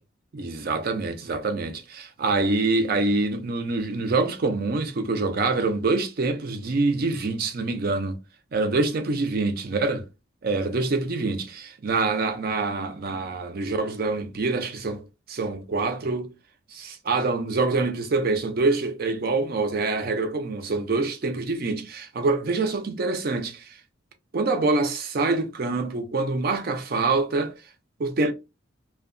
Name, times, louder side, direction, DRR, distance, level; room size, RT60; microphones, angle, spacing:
voice 1, 0.3-8.2 8.5-10.0 10.4-16.3 16.7-23.7 24.3-27.5 28.0-28.3, right 3 dB, 50° right, 0.5 m, -25 dB
2.6 x 2.2 x 2.5 m
head